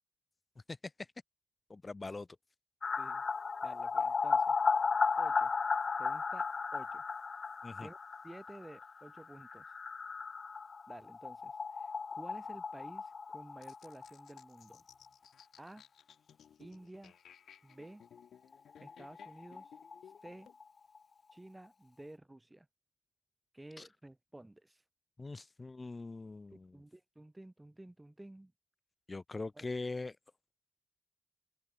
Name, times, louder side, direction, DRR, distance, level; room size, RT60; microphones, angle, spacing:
voice 1, 0.7-1.1 1.7-2.3 7.6-7.9 23.8-23.9 25.2-26.8 29.1-30.2, left 3 dB, 35° left, 1.2 m, -42 dB
sound 1, 2.8-14.4 14.7-14.8 15.1-15.2 18.2-18.3 18.5-18.6 18.9-20.6 21.0-21.1, left 5 dB, 50° left, 0.8 m, -35 dB
voice 2, 3.6-4.6 5.2-5.5 6.0-7.0 7.8-8.0 8.2-9.6 10.9-14.8 15.6-15.9 16.6-17.2 17.6-18.0 18.8-19.7 20.2-20.5 21.3-22.7 23.5-24.8 26.5-28.5 29.6-29.7, right 1 dB, 15° right, 5.7 m, -52 dB
sound 2, 13.6-20.6, left 9 dB, 75° left, 6.1 m, -60 dB
open air
supercardioid pair, 45°, 0 cm